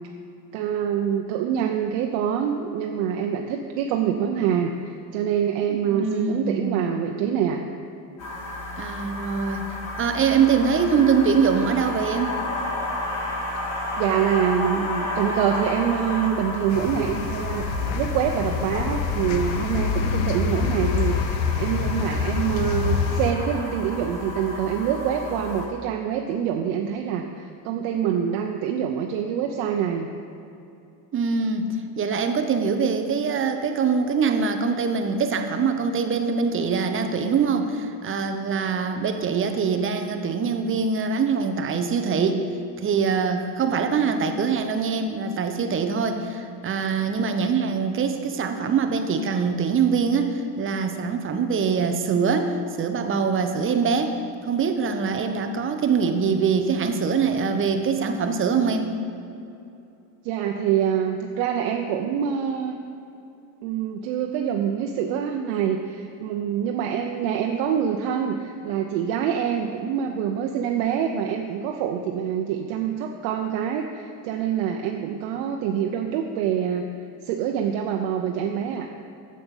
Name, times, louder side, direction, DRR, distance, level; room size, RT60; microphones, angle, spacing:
voice 1, 0.5-7.6 13.5-13.6 14.0-30.1 60.2-62.8 63.6-76.9 77.2-78.9, right 8 dB, 65° right, 3 dB, 0.9 m, -25 dB
voice 2, 5.7-6.8 8.8-9.6 10.0-12.3 31.1-31.7 32.0-42.4 42.8-58.9, right 5 dB, 25° right, 6 dB, 0.8 m, -23 dB
sound 1, 8.2-25.7, left 1 dB, 35° left, 2.3 m, -32 dB
sound 2, 16.7-23.3, left 5 dB, 80° left, 1.1 m, -26 dB
9.3 x 7.7 x 7.1 m, 2.7 s
cardioid pair, 140°, 49 cm